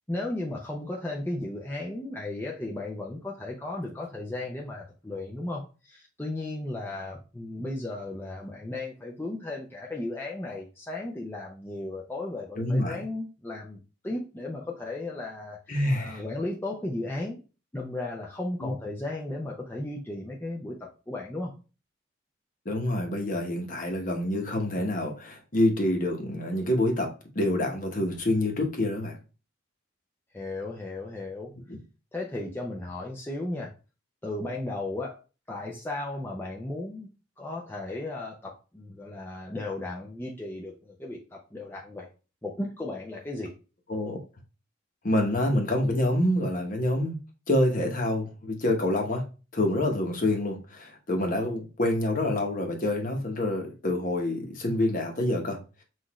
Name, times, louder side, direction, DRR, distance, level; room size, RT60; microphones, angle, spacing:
voice 1, 0.1-13.8 14.0-17.4 17.7-20.8 21.1-21.5 30.3-31.5 32.1-33.7 34.2-35.2 35.5-37.1 37.4-42.1 42.4-43.5, left 2 dB, 10° left, -2 dB, 0.5 m, -35 dB
voice 2, 12.6-13.0 15.7-16.2 18.6-18.7 22.6-29.2 31.7-31.8 43.9-44.2 45.0-47.2 47.5-49.2 49.5-55.6, left 1 dB, 40° left, 3 dB, 0.9 m, -27 dB
5.9 x 2.5 x 3.0 m, 0.32 s
head